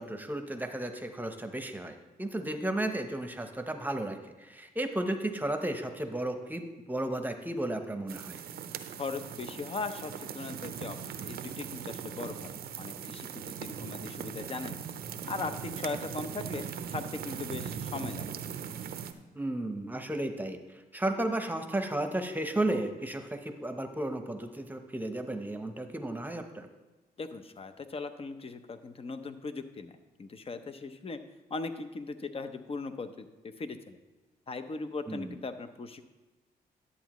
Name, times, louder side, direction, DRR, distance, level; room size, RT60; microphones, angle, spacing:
voice 1, 0.0-8.4 19.3-20.6 20.9-26.7 35.1-35.4, right 1 dB, 10° right, 6 dB, 0.9 m, -34 dB
sound 1, 8.1-19.1, right 8 dB, 75° right, 0.6 m, -40 dB
voice 2, 9.0-11.0 11.2-12.5 12.8-14.9 15.2-18.4 27.2-31.2 31.5-34.0 34.5-36.0, left 3 dB, 35° left, 9 dB, 0.7 m, -39 dB
11.0 x 8.1 x 3.1 m, 1.1 s
cardioid pair, 80°, 16 cm